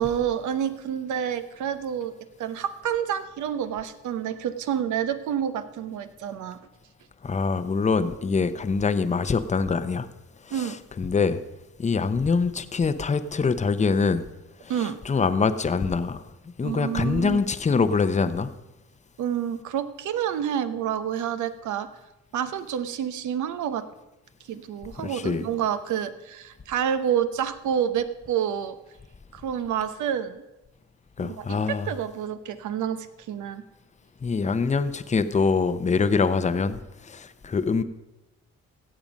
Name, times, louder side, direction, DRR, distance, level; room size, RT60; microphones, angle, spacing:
voice 1, 0.0-2.1 2.4-6.6 10.5-10.8 14.7-15.0 16.6-17.4 19.2-21.9 22.3-23.8 24.5-28.8 29.3-30.4 31.2-33.6, right 9 dB, 75° right, 0.9 m, -28 dB
voice 2, 7.2-10.1 10.5-11.4 11.8-14.3 14.6-16.2 16.6-18.5 25.0-25.4 31.2-31.9 34.2-37.8, left 4 dB, 25° left, 0.7 m, -24 dB
16.5 x 7.1 x 5.2 m
cardioid pair, 90°, 30 cm